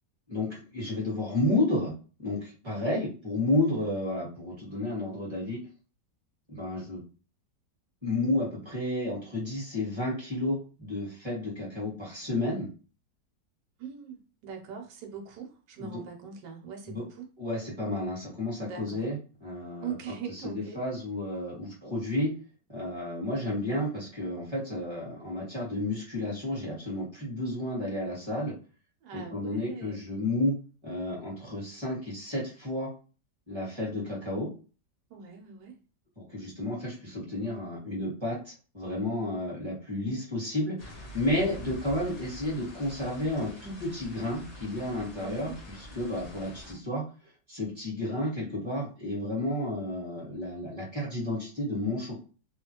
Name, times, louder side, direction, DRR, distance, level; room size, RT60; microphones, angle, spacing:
voice 1, 0.3-1.9 2.2-5.6 6.5-7.0 8.0-12.7 15.8-16.0 16.9-17.0 17.4-19.9 20.3-22.3 22.7-28.5 29.1-30.5 30.8-32.9 33.5-34.5 36.2-45.5 45.9-47.0 47.5-52.2, left 1 dB, 15° right, -5 dB, 1.3 m, -31 dB
voice 2, 2.6-3.0 13.8-17.3 18.6-19.0 19.8-20.8 29.0-30.1 35.1-35.8 45.2-45.6, right 7 dB, 80° right, 2 dB, 1.4 m, -41 dB
sound 1, 40.8-46.7, left 1 dB, 55° left, 0.4 m, -46 dB
3.0 x 2.4 x 2.8 m, 0.36 s
omnidirectional pair, 1.9 m